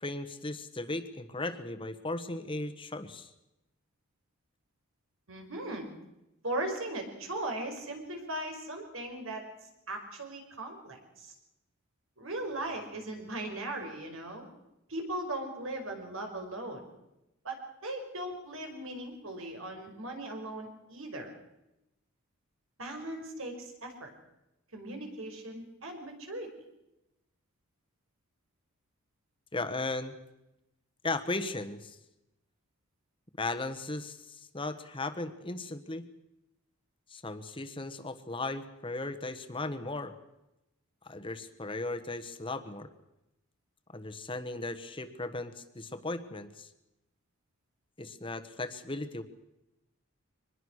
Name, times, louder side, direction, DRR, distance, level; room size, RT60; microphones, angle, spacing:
voice 1, 0.0-3.3 29.5-30.2 31.0-31.9 33.4-36.1 37.1-40.1 41.0-42.9 43.9-46.7 48.0-49.2, left 2 dB, 25° left, 9 dB, 1.3 m, -36 dB
voice 2, 5.3-5.9 6.4-9.4 9.9-11.3 12.2-14.4 14.9-16.8 17.4-17.6 17.8-21.3 22.8-24.1 24.7-26.5, right 1 dB, 75° right, 4 dB, 5.3 m, -38 dB
24.5 x 20.5 x 6.4 m, 0.91 s
head